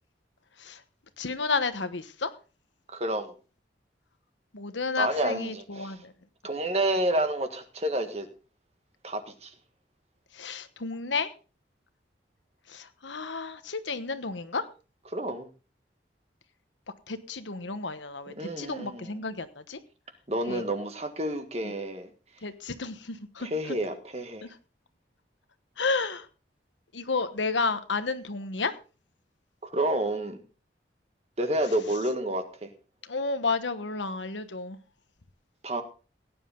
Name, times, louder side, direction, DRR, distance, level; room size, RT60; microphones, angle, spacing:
voice 1, 1.2-2.3 4.5-6.1 10.3-11.3 12.7-14.6 17.1-19.8 20.5-20.6 22.4-23.8 24.4-24.5 25.8-26.3 26.9-28.7 33.0-34.8, left 4 dB, 85° left, 1.2 m, -31 dB
voice 2, 2.9-3.3 5.0-6.0 6.4-8.3 9.0-9.5 15.1-15.5 18.4-19.2 20.3-22.1 23.4-24.5 29.6-30.4 31.4-32.7 35.6-35.8, right 1 dB, 35° right, 1.7 m, -29 dB
17.0 x 10.0 x 3.8 m
head